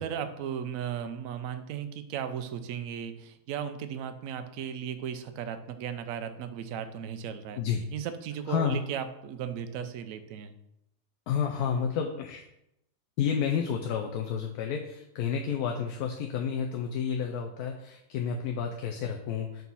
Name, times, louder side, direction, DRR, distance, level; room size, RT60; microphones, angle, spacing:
voice 1, 0.0-7.6 7.9-10.5, right 8 dB, 70° right, 9 dB, 0.9 m, -36 dB
voice 2, 8.5-8.8 11.3-12.5 13.2-19.6, left 7 dB, 90° left, 3 dB, 1.1 m, -30 dB
4.5 x 4.0 x 5.3 m, 0.82 s
omnidirectional pair, 1.6 m